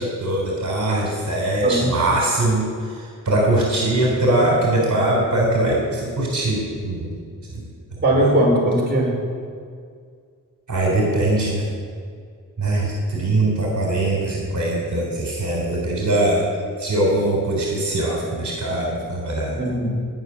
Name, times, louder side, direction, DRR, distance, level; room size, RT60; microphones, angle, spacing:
voice 1, 0.0-7.1 7.5-7.6 8.1-8.3 10.7-11.6 12.6-16.5 16.8-19.6, right 1 dB, 60° right, -2 dB, 3.8 m, -21 dB
voice 2, 1.6-2.0 8.0-9.2 19.6-19.9, right 1 dB, 30° right, -3 dB, 5.2 m, -19 dB
19.5 x 6.9 x 9.9 m, 2.1 s
wide cardioid pair, 110°, 33 cm